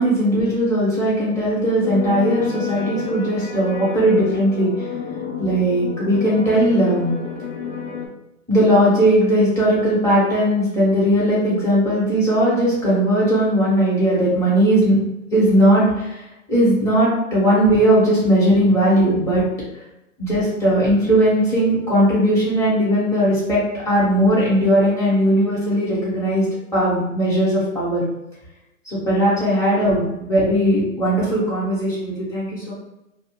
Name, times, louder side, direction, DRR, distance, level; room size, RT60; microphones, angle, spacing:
voice 1, 0.0-4.9 5.4-7.1 8.5-15.0 15.3-16.2 16.5-19.4 20.2-23.6 23.9-26.5 26.7-28.0 28.8-32.7, right 1 dB, 5° left, -9 dB, 0.8 m, -18 dB
sound 1, 1.8-8.1, left 7 dB, 55° left, 0.6 m, -30 dB
2.3 x 2.0 x 3.5 m, 0.89 s
hypercardioid pair, 135°, 41 cm